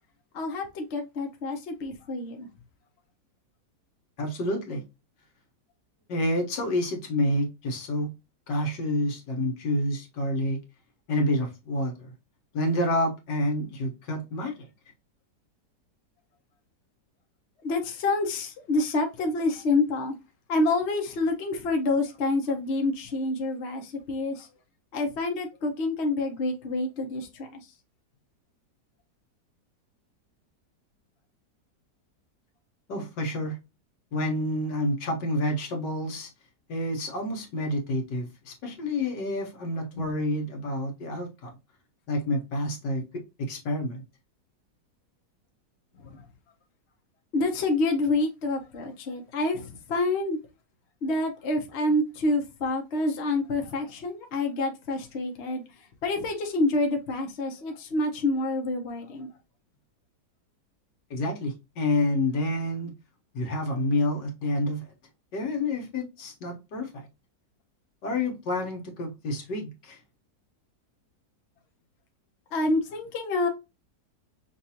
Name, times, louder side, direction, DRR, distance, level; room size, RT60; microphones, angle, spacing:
voice 1, 0.3-2.5 17.6-20.1 20.5-24.5 24.9-27.6 39.9-40.1 45.9-46.2 47.3-50.4 51.0-55.6 56.0-59.3 72.5-73.5, left 2 dB, 45° left, 1.0 m, -27 dB
voice 2, 4.2-4.8 6.1-8.1 8.5-10.6 11.1-12.1 12.5-14.6 32.9-33.6 34.1-36.3 36.7-41.5 42.1-44.0 61.1-62.9 63.3-64.9 65.3-67.1 68.0-70.0, left 1 dB, 80° left, 1.8 m, -28 dB
5.8 x 2.6 x 2.8 m
omnidirectional pair, 1.9 m